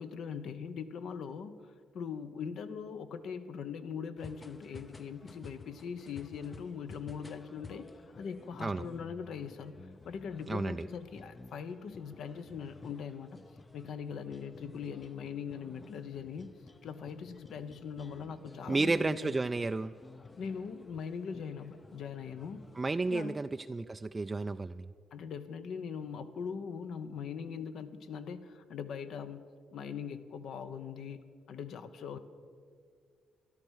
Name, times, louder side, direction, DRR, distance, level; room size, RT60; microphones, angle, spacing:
voice 1, 0.0-1.6 1.9-7.9 8.1-13.4 13.7-16.5 16.8-19.3 20.4-22.6 23.1-23.4 25.1-29.4 29.7-31.2 31.5-32.2, left 6 dB, 70° left, 11 dB, 0.9 m, -41 dB
sound 1, 4.2-23.3, left 3 dB, 25° left, 0.6 m, -54 dB
voice 2, 10.5-10.9 18.7-19.9 22.8-24.9, right 3 dB, 25° right, 9 dB, 0.3 m, -32 dB
13.5 x 12.0 x 6.4 m, 2.1 s
cardioid pair, 90°, 0 cm